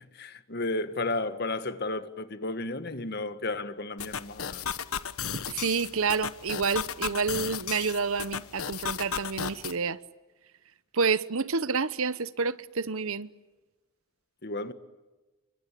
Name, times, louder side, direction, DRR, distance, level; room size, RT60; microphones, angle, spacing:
voice 1, 0.0-4.7 14.4-14.7, left 2 dB, 45° left, 1.7 m, -33 dB
sound 1, 4.0-9.7, left 7 dB, 80° left, 1.2 m, -35 dB
voice 2, 5.5-10.0 10.9-13.3, right 5 dB, 70° right, 0.9 m, -29 dB
29.5 x 24.0 x 8.3 m
head